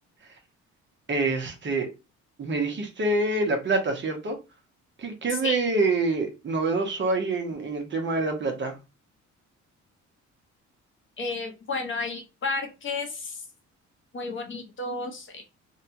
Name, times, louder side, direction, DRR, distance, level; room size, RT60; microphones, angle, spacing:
voice 1, 1.1-1.9 2.4-4.4 5.0-8.8, right 3 dB, 40° right, 0.8 m, -26 dB
voice 2, 11.2-13.5 14.1-15.4, left 3 dB, 40° left, 0.8 m, -32 dB
2.7 x 2.2 x 2.7 m
cardioid pair, 90°, 30 cm